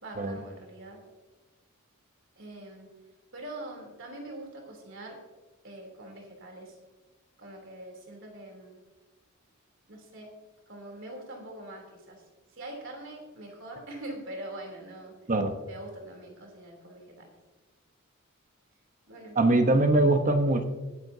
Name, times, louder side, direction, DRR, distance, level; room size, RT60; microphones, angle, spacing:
voice 1, 0.0-1.0 2.4-2.9 3.3-5.2 5.6-6.8 7.4-8.8 9.9-10.3 10.7-15.1 15.7-17.4 19.0-19.4, right 1 dB, 60° right, 2 dB, 3.4 m, -43 dB
voice 2, 19.4-20.6, right 2 dB, 35° right, 7 dB, 1.1 m, -22 dB
20.5 x 9.6 x 2.8 m, 1.2 s
head